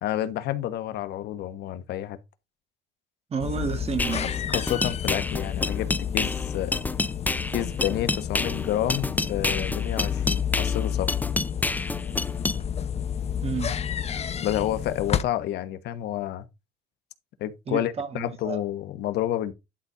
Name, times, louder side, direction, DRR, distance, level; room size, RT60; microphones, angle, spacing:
voice 1, 0.0-2.2 4.5-6.8 7.5-11.1 14.4-16.4 17.4-19.5, left 12 dB, 75° left, 1.3 m, -29 dB
voice 2, 3.3-4.4 13.4-13.8 17.7-18.6, right 5 dB, 35° right, 2.4 m, -31 dB
sound 1, 3.4-15.2, left 8 dB, 40° left, 1.0 m, -30 dB
sound 2, 4.0-12.6, left 2 dB, 10° left, 0.6 m, -28 dB
11.5 x 4.2 x 4.8 m
cardioid pair, 110°, 17 cm